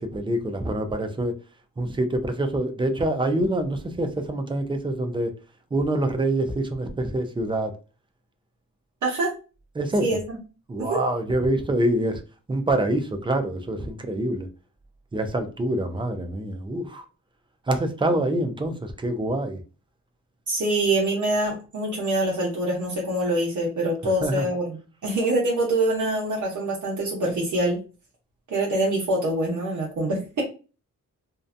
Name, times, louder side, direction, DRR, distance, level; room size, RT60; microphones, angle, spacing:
voice 1, 0.0-1.3 1.8-5.3 5.7-7.7 9.8-10.0 10.7-12.2 12.5-14.5 15.1-17.1 17.7-19.6 24.2-24.5, right 1 dB, 15° right, 0.3 m, -25 dB
voice 2, 9.0-9.3 10.0-10.4 10.8-11.0 20.5-27.8 28.5-30.4, right 1 dB, 65° right, 0.8 m, -25 dB
2.6 x 2.1 x 2.4 m
wide cardioid pair, 140°, 33 cm